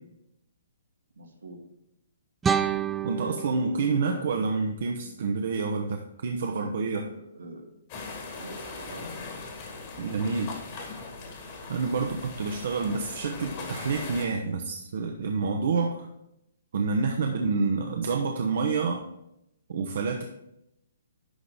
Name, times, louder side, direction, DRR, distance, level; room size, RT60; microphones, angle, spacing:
voice 1, 1.2-1.6 6.9-7.7 8.4-9.1, right 2 dB, 80° right, 1 dB, 1.9 m, -45 dB
sound 1, 2.4-5.4, right 7 dB, 10° right, 0.4 m, -31 dB
voice 2, 3.0-7.1 10.0-10.5 11.7-16.1 16.7-19.1 19.7-20.2, right 4 dB, 60° right, 2 dB, 0.8 m, -28 dB
sound 2, 7.9-14.3, left 3 dB, 40° left, 2.0 m, -40 dB
11.5 x 3.9 x 4.9 m, 0.82 s
figure-of-eight pair, 130°, 0 cm